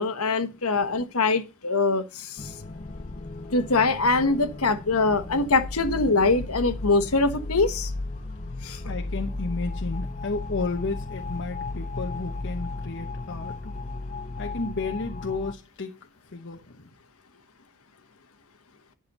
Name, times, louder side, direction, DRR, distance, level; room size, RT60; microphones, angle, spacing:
voice 1, 0.0-2.5 3.5-7.9 8.6-8.8, left 3 dB, 75° left, 1.4 m, -23 dB
sound 1, 2.4-15.5, left 2 dB, 35° left, 0.8 m, -35 dB
voice 2, 8.8-13.7 14.4-16.0 16.3-16.9, left 3 dB, 55° left, 1.0 m, -32 dB
10.5 x 6.3 x 5.4 m
head